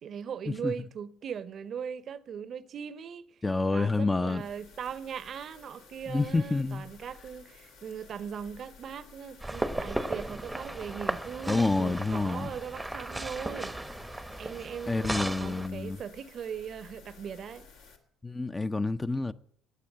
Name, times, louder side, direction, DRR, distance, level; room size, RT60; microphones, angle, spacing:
voice 1, 0.0-3.3 3.7-13.8 14.4-17.7, right 7 dB, 50° right, 0.7 m, -39 dB
voice 2, 3.4-4.4 6.1-6.8 11.5-12.5 14.9-16.0 18.2-19.3, left 3 dB, 20° left, 0.5 m, -28 dB
sound 1, 4.2-18.0, left 5 dB, 70° left, 1.9 m, -54 dB
sound 2, 9.4-15.7, right 1 dB, 10° right, 0.8 m, -36 dB
15.0 x 9.1 x 7.5 m
hypercardioid pair, 55°, 0 cm